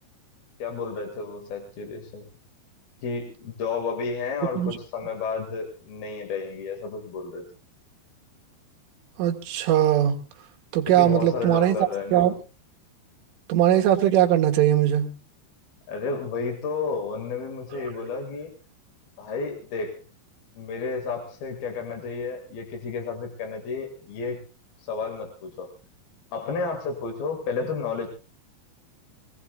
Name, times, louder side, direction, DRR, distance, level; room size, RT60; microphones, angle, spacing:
voice 1, 0.6-2.3 3.0-7.5 10.9-12.3 15.9-18.5 19.2-20.0 20.6-24.4 24.8-25.7 26.3-28.1, left 4 dB, 55° left, 4 dB, 3.4 m, -31 dB
voice 2, 9.2-10.2 10.7-11.8 12.1-12.3 13.5-15.1, right 11 dB, 75° right, 3 dB, 4.0 m, -20 dB
24.5 x 17.5 x 2.4 m, 0.33 s
omnidirectional pair, 5.8 m